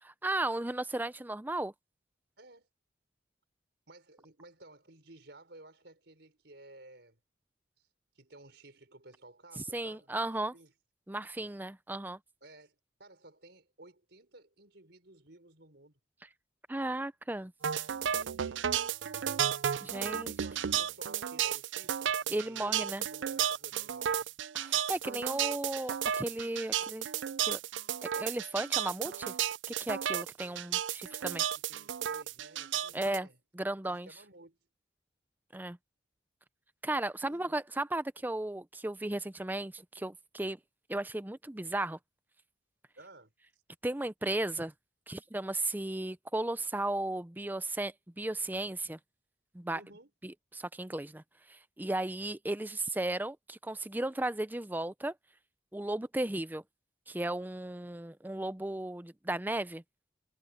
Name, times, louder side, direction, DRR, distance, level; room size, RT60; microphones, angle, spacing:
voice 1, 0.0-1.7 9.7-10.5 11.1-12.2 16.7-17.5 19.8-20.3 22.3-23.0 24.6-27.1 27.5-27.6 28.0-29.3 29.8-31.4 32.9-33.3 33.6-34.1 35.5-35.8 36.8-40.6 40.9-42.0 43.8-44.7 45.1-49.0 49.5-49.8 50.2-51.2 51.5-55.1 55.7-56.6 57.1-59.8, right 1 dB, 10° right, 0.6 m, -35 dB
voice 2, 2.4-2.7 3.9-7.2 7.8-7.9 8.1-10.7 12.4-16.0 18.1-18.7 20.2-24.3 31.6-33.4 33.8-34.6 37.3-37.7 43.0-43.6 49.7-50.1, right 2 dB, 65° right, 5.6 m, -55 dB
sound 1, 17.6-33.2, right 9 dB, 85° right, 0.5 m, -33 dB
head